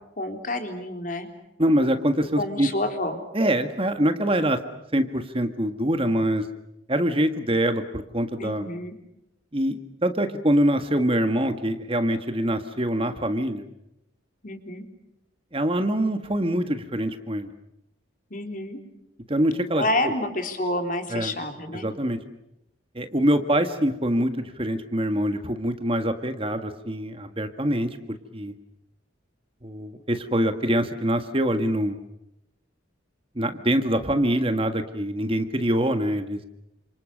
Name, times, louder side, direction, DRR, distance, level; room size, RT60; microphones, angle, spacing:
voice 1, 0.2-1.3 2.4-3.2 8.4-9.0 14.4-14.9 18.3-18.8 19.8-21.9, left 1 dB, 40° left, 6 dB, 3.7 m, -29 dB
voice 2, 1.6-2.7 3.3-4.6 4.9-6.5 6.9-8.7 9.5-13.6 15.5-17.5 19.3-19.8 21.1-21.3 21.8-22.2 22.9-28.5 29.6-32.0 33.3-36.4, right 1 dB, 30° right, 8 dB, 1.7 m, -24 dB
30.0 x 27.5 x 6.7 m, 0.84 s
head